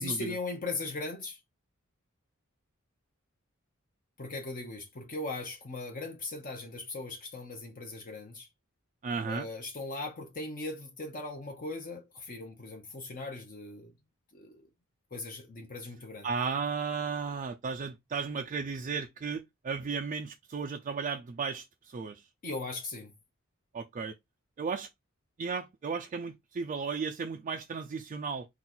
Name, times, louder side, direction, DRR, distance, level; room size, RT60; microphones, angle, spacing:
voice 1, 0.0-1.4 4.2-8.5 9.3-13.9 14.3-14.7 15.1-16.3 22.4-23.1, left 3 dB, 40° left, 0.7 m, -39 dB
voice 2, 9.0-9.5 16.2-22.3 23.7-24.1 24.6-24.9 25.4-28.5, right 5 dB, 35° right, 0.3 m, -34 dB
3.9 x 2.3 x 4.2 m
head